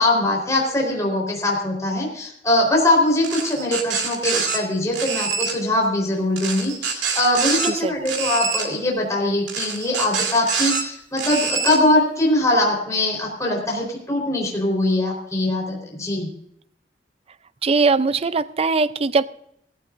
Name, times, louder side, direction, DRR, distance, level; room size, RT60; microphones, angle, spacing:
voice 1, 0.0-16.3, left 1 dB, 20° left, -1 dB, 4.0 m, -22 dB
sound 1, 3.2-4.6 4.9-5.5 6.4-7.7 8.0-8.7 9.5-10.8 11.2-11.8, right 5 dB, 85° right, 2.4 m, -25 dB
voice 2, 7.6-8.1 17.6-19.3, right 4 dB, 35° right, 14 dB, 0.5 m, -20 dB
17.0 x 15.5 x 2.6 m, 0.73 s
head